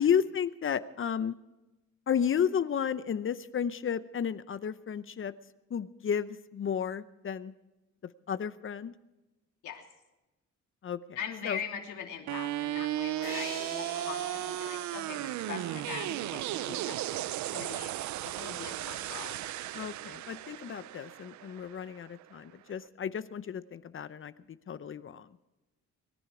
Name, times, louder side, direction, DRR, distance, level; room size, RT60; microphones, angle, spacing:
voice 1, 0.0-1.3 2.1-5.3 5.7-7.5 8.3-8.9 10.8-11.0 11.4-11.6 19.7-24.3 24.7-25.3, left 8 dB, 45° left, 14 dB, 0.7 m, -32 dB
voice 2, 11.1-17.9 18.2-19.5, left 8 dB, 80° left, 2 dB, 2.9 m, -42 dB
sound 1, 12.3-22.3, right 14 dB, 70° right, 0.5 m, -35 dB
sound 2, 13.2-16.5, right 3 dB, 90° right, 6.7 m, -45 dB
23.0 x 11.0 x 4.9 m, 1.0 s
cardioid pair, 90°, 30 cm